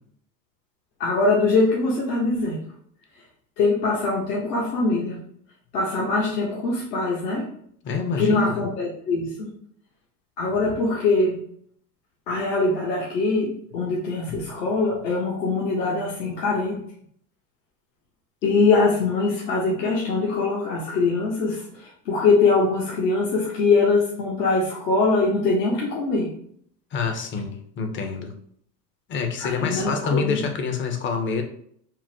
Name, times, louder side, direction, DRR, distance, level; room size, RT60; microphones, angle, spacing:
voice 1, 1.0-2.6 3.6-5.2 5.7-7.5 8.2-9.5 10.4-11.4 12.3-16.8 18.4-26.3 29.4-30.4, left 3 dB, 75° left, -3 dB, 0.9 m, -22 dB
voice 2, 7.8-8.6 26.9-28.3 29.1-31.4, left 5 dB, 25° left, 6 dB, 0.4 m, -27 dB
3.7 x 2.0 x 2.6 m, 0.64 s
hypercardioid pair, 85°, 50 cm